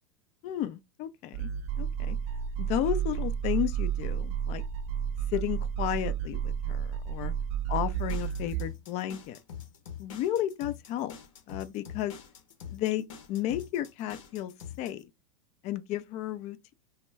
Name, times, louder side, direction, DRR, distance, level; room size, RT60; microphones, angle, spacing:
voice 1, 0.4-1.5 1.8-2.2 2.6-4.6 5.3-7.3 7.7-9.4 10.0-11.1 11.5-12.2 12.7-15.1 15.6-16.7, left 12 dB, 40° left, 0.4 m, -33 dB
sound 1, 1.3-8.7, right 9 dB, 40° right, 0.4 m, -31 dB
sound 2, 7.9-15.0, left 8 dB, 75° left, 0.8 m, -45 dB
2.2 x 2.1 x 3.3 m
hypercardioid pair, 95°, 17 cm